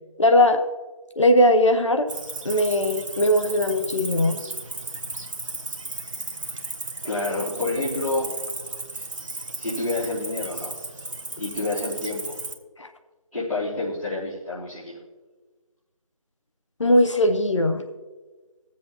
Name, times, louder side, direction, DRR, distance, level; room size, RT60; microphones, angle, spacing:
voice 1, 0.2-0.6 1.2-2.1 2.4-4.4 12.8-12.9 16.8-17.8, left 1 dB, 60° left, 7 dB, 0.9 m, -19 dB
Cricket, 2.1-12.5, right 2 dB, 65° right, 1.1 m, -35 dB
voice 2, 7.0-8.3 8.9-9.1 9.6-10.7 11.4-12.3 13.3-14.9, left 2 dB, 85° left, -11 dB, 3.3 m, -28 dB
20.5 x 7.5 x 2.9 m, 1.3 s
figure-of-eight pair, 170°, 18 cm